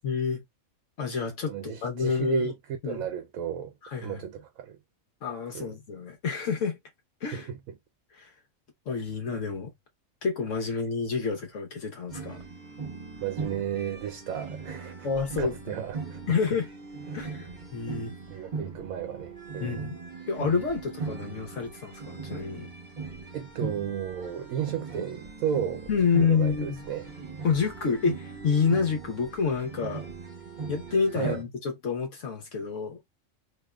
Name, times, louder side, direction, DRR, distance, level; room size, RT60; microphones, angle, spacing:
voice 1, 0.0-0.4 1.0-2.5 2.8-3.1 3.8-4.2 5.2-6.8 7.2-7.5 8.1-8.3 8.9-9.7 10.2-12.4 15.0-15.7 16.3-16.7 17.1-18.2 19.6-19.9 20.3-22.7 25.9-26.8 27.4-30.1 30.7-33.0, left 5 dB, 65° left, 1.2 m, -28 dB
voice 2, 1.5-2.6 2.9-3.7 4.0-4.8 5.5-5.7 7.3-7.6 13.2-15.1 15.4-16.4 17.1-17.2 18.3-19.8 23.3-25.9 26.2-27.1 31.1-31.4, right 9 dB, 90° right, 1.0 m, -33 dB
sound 1, 12.1-31.4, right 4 dB, 40° right, 0.9 m, -39 dB
3.3 x 2.9 x 2.3 m
omnidirectional pair, 1.4 m